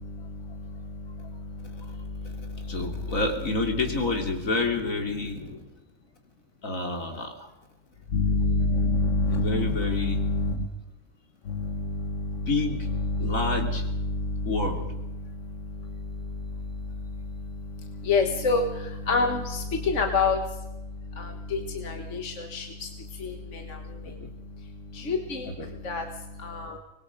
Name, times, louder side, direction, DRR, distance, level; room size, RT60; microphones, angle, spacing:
voice 1, 0.0-3.1 5.2-5.6 8.1-10.7 11.5-12.5 12.8-14.9 15.2-24.2 24.6-26.8, left 3 dB, 65° left, 5 dB, 1.8 m, -29 dB
voice 2, 2.7-5.4 6.6-7.5 9.3-10.2 12.5-12.9 13.2-13.8 14.4-14.8 24.0-24.1 25.4-25.7, left 2 dB, 80° left, 3 dB, 3.4 m, -29 dB
25.0 x 21.0 x 5.2 m, 1.0 s
omnidirectional pair, 1.4 m